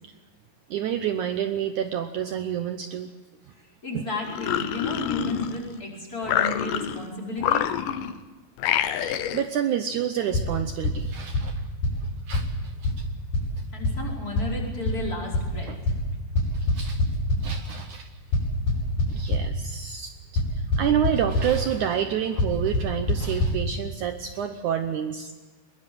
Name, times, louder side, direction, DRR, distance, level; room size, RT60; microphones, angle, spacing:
voice 1, 0.7-3.1 3.9-4.0 9.0-11.5 12.3-12.5 12.8-12.9 15.7-15.8 16.7-17.0 17.4-18.1 19.1-20.1 20.8-25.3, right 9 dB, 85° right, 8 dB, 1.7 m, -28 dB
voice 2, 3.8-7.7 13.7-15.7, left 2 dB, 20° left, 1 dB, 5.0 m, -33 dB
sound 1, 4.2-5.8 6.2-7.1 7.4-8.2 8.6-9.5, left 10 dB, 70° left, 2.1 m, -27 dB
sound 2, 10.3-10.4 10.8-10.9 11.3-11.4 11.8-11.9 12.3-12.4 12.8-12.9 13.3-13.4 13.8-13.9 14.4-14.5 14.9-15.0 15.3-15.4 15.9-16.0 16.4-17.4 18.3-19.4 20.4-20.5 20.7-21.1 21.3-21.4 22.4-22.5 22.7-22.8 23.1-23.2 23.4-23.5, left 2 dB, 50° left, 6.9 m, -21 dB
22.0 x 20.5 x 7.8 m, 1.3 s
omnidirectional pair, 4.8 m